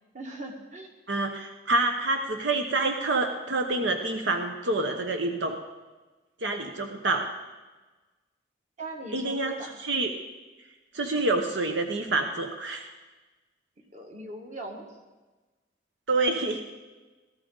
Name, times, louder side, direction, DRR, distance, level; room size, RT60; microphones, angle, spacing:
voice 1, 0.1-0.9 8.8-9.7 13.9-14.9, right 1 dB, 40° right, 2 dB, 1.9 m, -40 dB
voice 2, 1.1-5.6 6.4-7.3 9.1-10.1 10.9-12.9 16.1-16.6, right 2 dB, 80° right, 4 dB, 1.0 m, -27 dB
18.5 x 13.5 x 4.0 m, 1.2 s
head